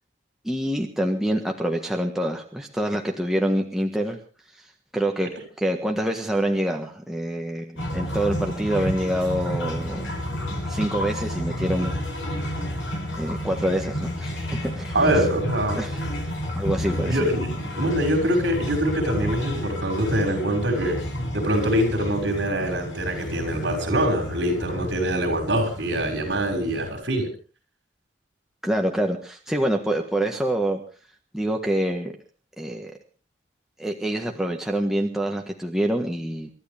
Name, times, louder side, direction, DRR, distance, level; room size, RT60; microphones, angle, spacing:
voice 1, 0.4-4.2 4.9-5.3 5.6-10.0 10.7-11.9 13.2-15.2 15.7-15.9 16.5-17.2 28.6-30.8 31.3-32.1 32.6-32.9 33.8-36.5, right 1 dB, ahead, 1 dB, 1.5 m, -26 dB
sound 1, 7.8-26.9, equal, 90° left, 7.2 m, -31 dB
voice 2, 14.9-15.8 17.1-17.5 17.8-21.0 21.3-27.3, right 1 dB, 65° right, 4 dB, 5.9 m, -24 dB
28.5 x 12.5 x 3.5 m, 0.36 s
head